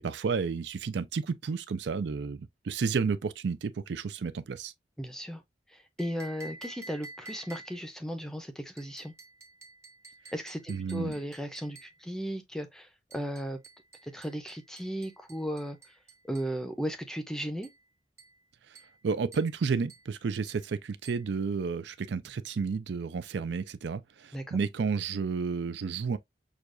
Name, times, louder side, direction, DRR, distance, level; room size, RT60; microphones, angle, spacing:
voice 1, 0.0-4.7 10.7-11.1 19.0-26.2, right 5 dB, 70° right, 0.4 m, -31 dB
voice 2, 5.0-5.4 5.7-9.1 10.3-13.6 14.0-15.8 16.3-17.7 24.3-24.6, equal, 5° left, 0.5 m, -36 dB
sound 1, 6.0-7.9 8.8-12.0 13.1-16.6 17.6-17.8 18.2-18.4 18.7-19.0 19.3-19.6 19.9-20.1 20.5-20.7 21.0-21.3, right 2 dB, 15° right, 0.8 m, -51 dB
6.3 x 2.3 x 2.5 m
head